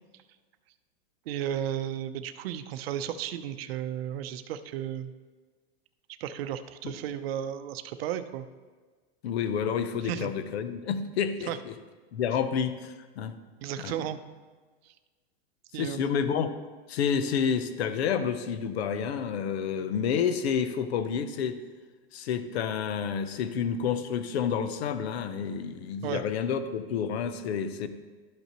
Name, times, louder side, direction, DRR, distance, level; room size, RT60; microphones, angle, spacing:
voice 1, 1.3-5.1 6.2-8.4 10.0-10.3 11.5-11.6 13.6-14.2 15.7-16.1 26.0-26.2, right 10 dB, 70° right, 10 dB, 0.6 m, -34 dB
voice 2, 9.2-11.8 12.1-13.3 13.8-13.9 15.7-16.5 16.9-21.6 22.1-27.9, left 7 dB, 80° left, 11 dB, 0.8 m, -29 dB
12.0 x 5.4 x 2.9 m, 1.4 s
supercardioid pair, 155°, 31 cm